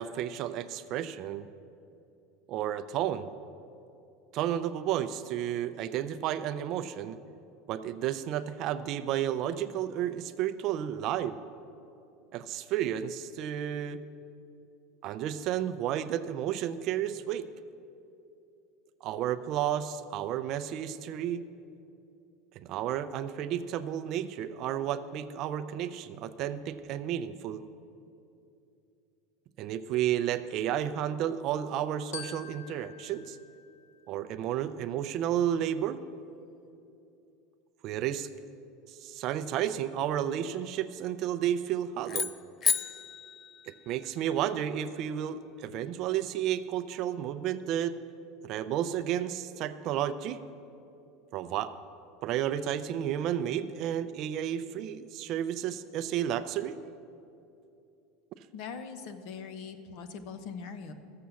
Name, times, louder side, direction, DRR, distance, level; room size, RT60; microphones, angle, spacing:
voice 1, 0.0-1.5 2.5-3.3 4.3-7.2 7.7-11.4 12.3-14.0 15.0-17.5 19.0-21.4 22.6-27.6 29.6-33.4 34.1-36.0 37.8-38.3 38.9-42.3 43.9-48.0 48.4-50.4 51.3-51.7 52.2-56.8, right 10 dB, 45° right, 12 dB, 0.5 m, -32 dB
Glockenspiel, 32.1-34.6, left 7 dB, 85° left, 1.2 m, -47 dB
sound 1, 42.1-44.4, left 6 dB, 30° left, 0.4 m, -32 dB
voice 2, 58.5-60.9, left 5 dB, 55° left, 9 dB, 1.0 m, -41 dB
14.0 x 7.5 x 7.0 m, 2.7 s
supercardioid pair, 150°, 0 cm